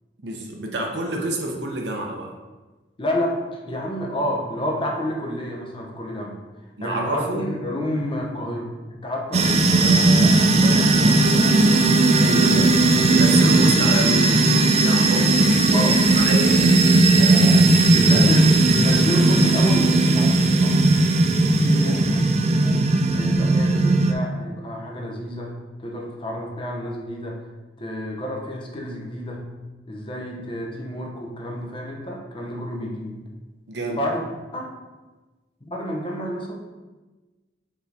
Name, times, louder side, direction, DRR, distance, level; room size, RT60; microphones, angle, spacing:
voice 1, 0.2-2.3 6.8-7.6 12.1-12.7 13.1-18.2 21.8-22.0 33.7-34.0, right 2 dB, 70° right, 1 dB, 1.0 m, -29 dB
voice 2, 3.0-6.4 6.8-11.9 12.4-12.6 15.7-16.0 17.9-20.9 21.6-27.4 27.8-29.5 29.9-33.2 33.9-34.2 34.5-34.7 35.6-36.5, equal, 30° left, 0 dB, 0.8 m, -30 dB
sound 1, 9.3-24.1, right 2 dB, 35° right, 0.4 m, -17 dB
5.4 x 4.0 x 4.8 m, 1.2 s
head